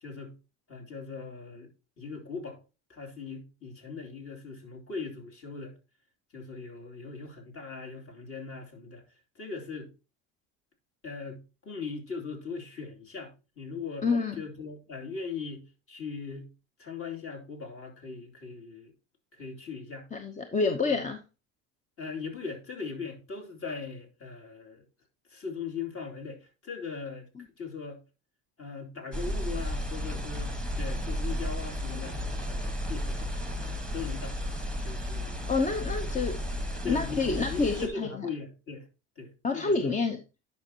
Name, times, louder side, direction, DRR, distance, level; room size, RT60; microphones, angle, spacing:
voice 1, 0.0-0.4 0.7-2.6 2.9-5.7 6.3-9.0 9.3-9.9 11.0-14.1 14.4-16.5 16.8-18.9 19.4-20.1 20.9-21.0 22.0-24.8 25.3-27.3 27.6-28.0 28.6-32.2 32.5-34.4 34.8-35.5 36.8-38.9 39.2-40.0, left 5 dB, 40° left, 2.9 m, -40 dB
voice 2, 14.0-14.4 20.1-21.2 35.5-36.3 36.8-38.1 39.4-40.2, left 4 dB, 20° left, 0.8 m, -28 dB
sound 1, 29.1-37.9, left 1 dB, 5° left, 1.4 m, -33 dB
10.5 x 5.5 x 2.9 m
supercardioid pair, 105°, 36 cm